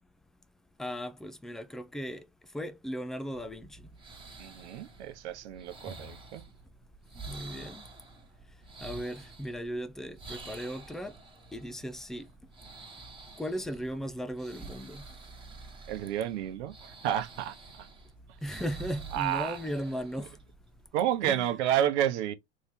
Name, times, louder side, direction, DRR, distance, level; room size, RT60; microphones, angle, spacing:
voice 1, 0.8-2.2 2.5-3.8 7.3-7.9 8.8-11.1 11.5-12.3 13.4-15.0 18.4-20.4 21.2-21.5, equal, ahead, 0.3 m, -37 dB
sound 1, 3.3-20.9, right 3 dB, 15° right, 1.2 m, -48 dB
voice 2, 4.4-6.4 15.9-17.9 19.1-19.6 20.9-22.3, right 11 dB, 75° right, 0.9 m, -30 dB
3.2 x 2.8 x 3.5 m
hypercardioid pair, 110°, 35 cm